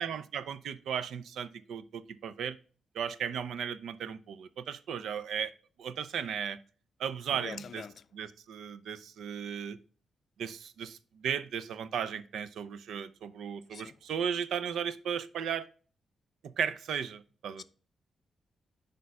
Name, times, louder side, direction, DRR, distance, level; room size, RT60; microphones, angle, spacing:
voice 1, 0.0-2.6 2.9-5.5 5.8-6.6 7.0-7.9 8.1-9.8 10.4-15.7 16.4-17.6, right 7 dB, 80° right, 0.5 m, -36 dB
voice 2, 7.3-8.0 13.7-14.0 17.6-17.7, left 6 dB, 65° left, 0.4 m, -44 dB
9.4 x 5.2 x 2.2 m
cardioid pair, 60°, 0 cm